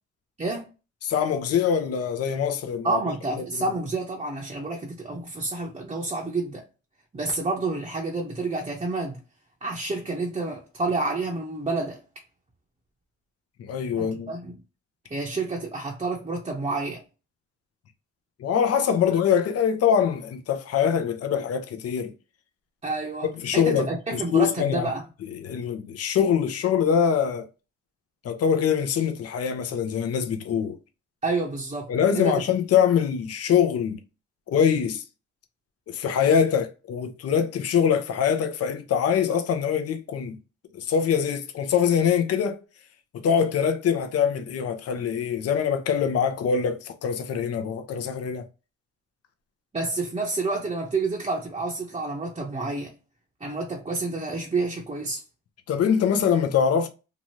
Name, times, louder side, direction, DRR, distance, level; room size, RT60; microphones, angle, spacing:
voice 1, 0.4-0.7 2.8-6.6 7.1-9.2 9.6-12.0 14.0-14.6 15.1-17.0 19.0-19.1 22.8-25.1 31.2-32.4 49.7-52.9 53.4-55.2, right 3 dB, 20° right, 0.7 m, -29 dB
voice 2, 1.0-3.0 13.6-14.3 18.4-22.1 23.4-24.9 25.4-27.5 28.2-30.8 31.9-34.0 34.5-35.0 35.9-40.4 40.7-42.6 43.2-48.4 55.7-56.9, left 7 dB, 55° left, 0.6 m, -23 dB
2.8 x 2.5 x 3.0 m
cardioid pair, 90°, 30 cm